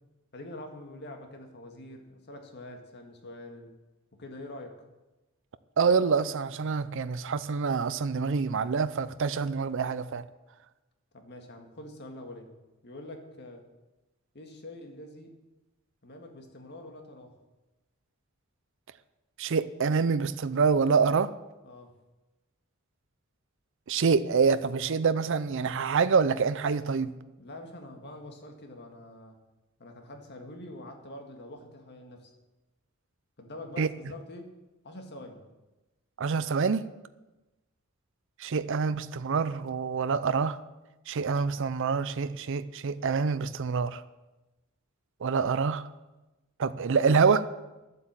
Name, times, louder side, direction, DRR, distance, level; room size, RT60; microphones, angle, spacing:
voice 1, 0.3-3.7 4.2-4.8 11.1-12.5 12.8-13.6 14.3-15.3 16.0-17.3 21.6-21.9 27.4-29.4 29.8-32.3 33.4-34.5 34.8-35.4, left 1 dB, 55° left, 1.9 m, -45 dB
voice 2, 5.8-10.2 19.4-21.3 23.9-27.1 33.8-33.9 36.2-36.9 38.4-40.6 41.1-44.0 45.2-45.9 46.6-47.5, right 5 dB, 65° right, 0.5 m, -26 dB
11.5 x 8.3 x 7.5 m
head